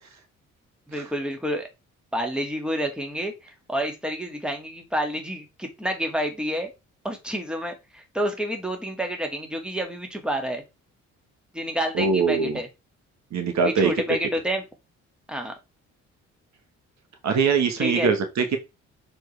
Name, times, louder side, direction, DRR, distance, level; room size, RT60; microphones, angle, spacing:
voice 1, 0.9-1.7 2.1-6.7 7.0-10.6 11.5-12.7 13.8-14.6 15.3-15.5 17.8-18.1, equal, 5° right, 4 dB, 1.9 m, -29 dB
voice 2, 11.9-12.6 13.3-13.9 17.2-18.6, right 5 dB, 65° right, 7 dB, 1.3 m, -22 dB
6.4 x 4.5 x 3.3 m, 0.24 s
cardioid pair, 90°, 30 cm